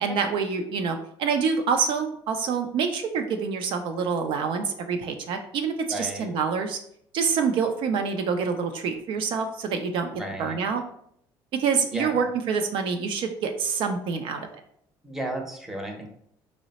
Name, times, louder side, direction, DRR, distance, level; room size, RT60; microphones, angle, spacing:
voice 1, 0.0-6.8 7.1-10.1 10.4-10.8 11.5-14.5, right 5 dB, 65° right, 5 dB, 0.4 m, -26 dB
voice 2, 5.9-6.3 10.1-10.6 11.9-12.3 15.0-16.1, right 1 dB, 5° right, 2 dB, 0.7 m, -34 dB
3.8 x 2.0 x 4.0 m, 0.69 s
cardioid pair, 110°, 9 cm